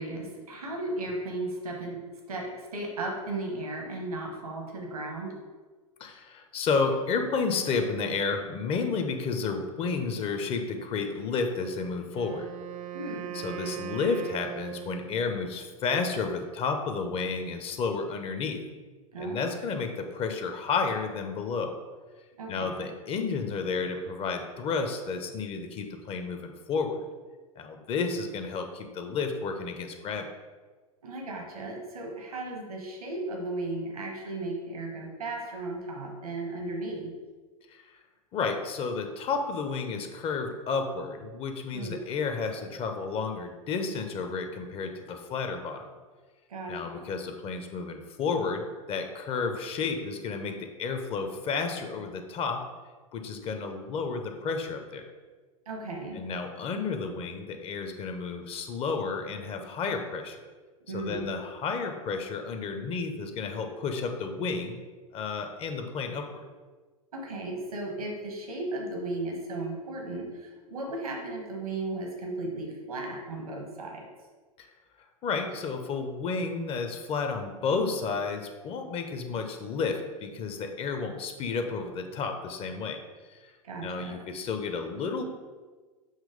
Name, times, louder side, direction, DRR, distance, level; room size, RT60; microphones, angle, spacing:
voice 1, 0.0-2.0 2.3-5.3 12.9-13.3 19.1-19.5 22.4-22.9 31.0-37.1 41.7-42.0 46.5-46.9 55.7-56.2 60.9-61.3 67.1-74.1 83.6-84.2, right 2 dB, 75° right, 1 dB, 1.3 m, -35 dB
voice 2, 6.0-12.5 13.3-18.6 19.2-21.7 22.5-27.0 27.6-30.3 37.7-38.0 38.3-45.9 46.7-48.6 48.9-52.6 53.1-55.0 56.1-60.4 60.9-64.8 65.1-66.3 74.6-74.7 75.2-83.0 83.3-83.5 83.8-85.2, left 4 dB, 30° left, 6 dB, 0.7 m, -31 dB
Wind instrument woodwind instrument, 12.1-15.4, right 10 dB, 50° right, 0.8 m, -39 dB
7.4 x 3.0 x 5.0 m, 1.4 s
figure-of-eight pair, 95°, 19 cm